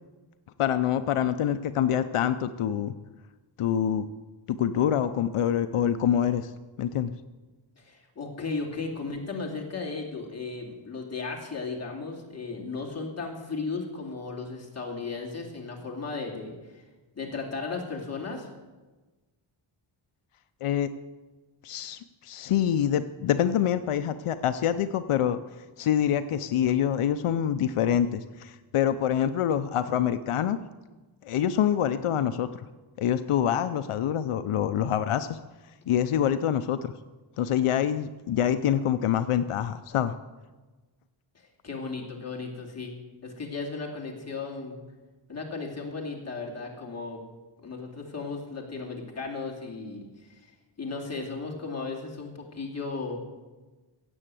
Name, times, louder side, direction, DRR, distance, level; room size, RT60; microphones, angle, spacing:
voice 1, 0.6-2.9 3.6-4.1 4.5-6.5 6.8-7.1 20.6-20.9 21.6-25.4 25.8-30.6 31.2-32.6 33.0-35.4 35.9-36.9 37.4-40.1, left 9 dB, 85° left, 11 dB, 0.7 m, -26 dB
voice 2, 7.8-16.8 17.1-18.5 41.3-42.9 43.2-44.8 45.3-47.2 47.6-50.5 50.8-53.2, left 4 dB, 30° left, -2 dB, 2.6 m, -35 dB
16.5 x 7.9 x 7.6 m, 1.2 s
wide cardioid pair, 180°, 50 cm